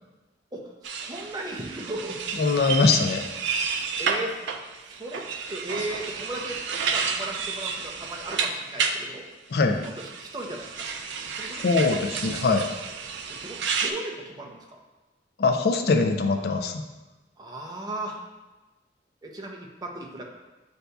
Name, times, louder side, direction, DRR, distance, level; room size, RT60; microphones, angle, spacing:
sound 1, 0.8-9.0 9.8-13.9, right 5 dB, 85° right, 0.4 m, -31 dB
voice 1, 1.0-2.2 2.6-2.8 4.0-4.4 4.9-6.6 6.9-9.3 9.8-10.9 11.3-12.1 13.3-14.8 17.4-18.2 19.2-20.2, right 1 dB, 25° right, 0 dB, 0.5 m, -36 dB
voice 2, 2.4-3.2 9.5-9.8 11.5-12.7 15.4-16.8, left 4 dB, 60° left, 6 dB, 0.4 m, -22 dB
7.7 x 2.7 x 2.3 m, 1.1 s
head